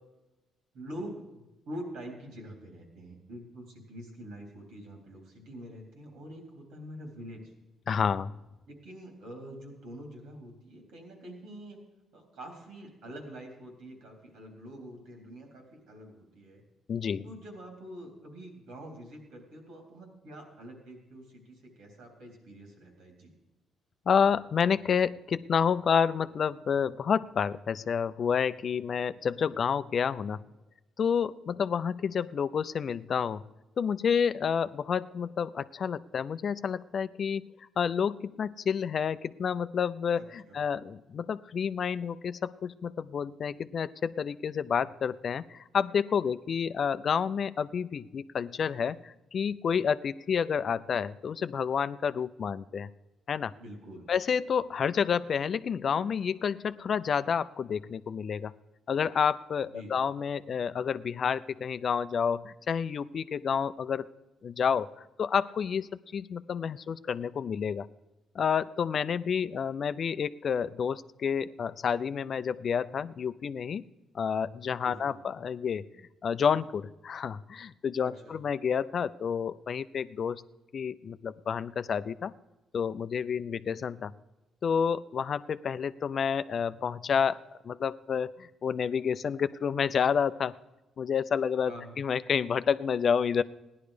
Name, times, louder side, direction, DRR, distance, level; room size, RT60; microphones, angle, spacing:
voice 1, 0.7-7.4 8.7-11.8 12.1-16.6 17.2-23.3 40.2-40.6 53.6-54.1 59.7-59.9 74.8-75.2 78.0-78.4 91.7-92.0, equal, 90° right, 2 dB, 3.6 m, -45 dB
voice 2, 7.9-8.3 16.9-17.2 24.1-30.4 31.0-33.4 33.8-37.5 37.8-52.9 53.3-53.5 54.1-58.5 58.9-64.1 64.4-64.9 65.2-67.9 68.3-73.9 74.1-75.8 76.2-80.4 80.7-82.3 82.7-84.1 84.6-90.5 91.0-93.4, left 7 dB, 50° left, 14 dB, 0.4 m, -29 dB
16.0 x 10.5 x 5.0 m, 1.0 s
cardioid pair, 90°, 0 cm